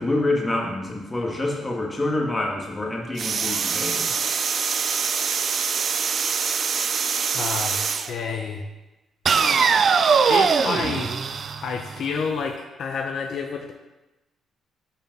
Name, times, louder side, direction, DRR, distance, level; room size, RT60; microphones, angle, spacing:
voice 1, 0.0-4.1, left 2 dB, 20° left, 0 dB, 1.5 m, -26 dB
sound 1, 3.2-8.1 9.3-12.2, right 6 dB, 50° right, 0.4 m, -23 dB
voice 2, 7.1-7.8 8.1-8.6 10.3-11.1 11.6-13.7, left 5 dB, 65° left, 3 dB, 0.6 m, -29 dB
5.2 x 5.0 x 5.9 m, 1.1 s
cardioid pair, 90°, 0 cm